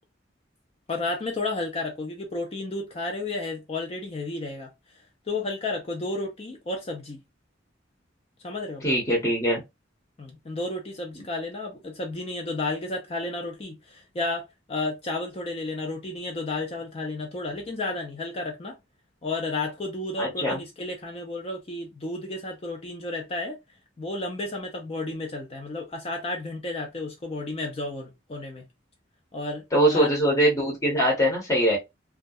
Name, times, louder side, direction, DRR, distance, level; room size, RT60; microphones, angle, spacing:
voice 1, 0.9-4.7 5.3-7.2 8.4-8.8 10.2-18.8 19.2-23.6 24.0-28.6 29.3-30.1, left 2 dB, 30° left, 0.5 m, -32 dB
voice 2, 8.8-9.6 20.2-20.6 29.7-31.8, right 1 dB, 15° left, 0.8 m, -22 dB
2.3 x 2.1 x 2.5 m
head